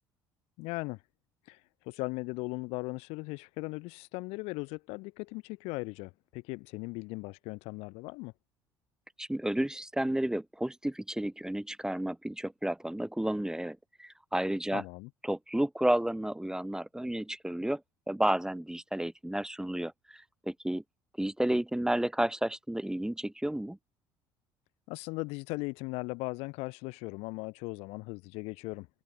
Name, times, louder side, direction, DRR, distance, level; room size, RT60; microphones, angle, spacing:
voice 1, 0.6-1.0 1.5-1.6 1.9-8.3 14.7-15.1 24.9-28.9, left 26 dB, 70° left, 2.1 m, -38 dB
voice 2, 9.2-14.8 15.2-17.8 18.1-20.8 21.2-23.8, right 1 dB, 5° right, 2.4 m, -31 dB
hypercardioid pair, 60°, 11 cm